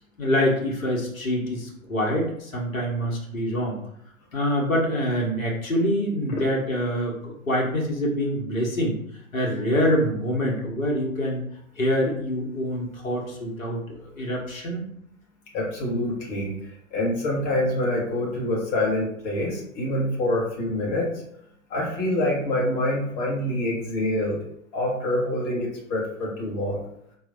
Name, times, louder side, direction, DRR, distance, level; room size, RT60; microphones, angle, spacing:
voice 1, 0.2-3.8 4.3-9.0 9.3-11.4 11.8-14.8, equal, 70° left, -1 dB, 1.2 m, -25 dB
voice 2, 15.5-21.1 21.7-24.4 24.7-26.8, left 1 dB, 30° left, -3 dB, 1.2 m, -26 dB
4.4 x 3.0 x 2.5 m, 0.72 s
figure-of-eight pair, 115°, 42 cm